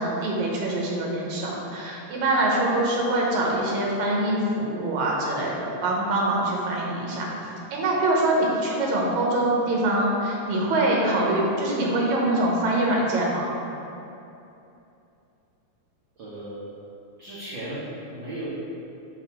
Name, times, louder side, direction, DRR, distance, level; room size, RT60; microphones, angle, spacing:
voice 1, 0.0-7.3 7.7-13.5, right 1 dB, 80° right, -2 dB, 2.4 m, -24 dB
voice 2, 16.2-16.7 17.2-18.4, right 1 dB, 65° right, -10 dB, 1.2 m, -36 dB
7.2 x 2.9 x 5.8 m, 2.8 s
omnidirectional pair, 3.3 m